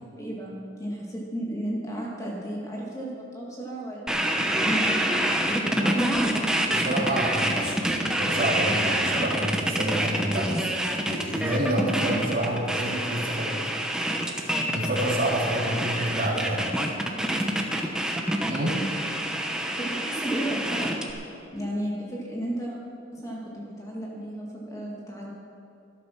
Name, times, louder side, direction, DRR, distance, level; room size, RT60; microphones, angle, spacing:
voice 1, 0.2-4.3 4.6-6.3 15.4-15.5 17.0-17.1 19.8-20.9 21.5-22.8 23.1-25.3, right 1 dB, 15° left, -3 dB, 2.0 m, -33 dB
sound 1, 4.1-21.1, right 1 dB, 5° right, 0.9 m, -27 dB
voice 2, 5.7-6.1 6.7-10.7 11.0-13.5 14.4-16.7 17.3-17.5 18.5-18.8, right 1 dB, 45° right, -4 dB, 2.8 m, -28 dB
13.0 x 12.0 x 5.9 m, 2.7 s
head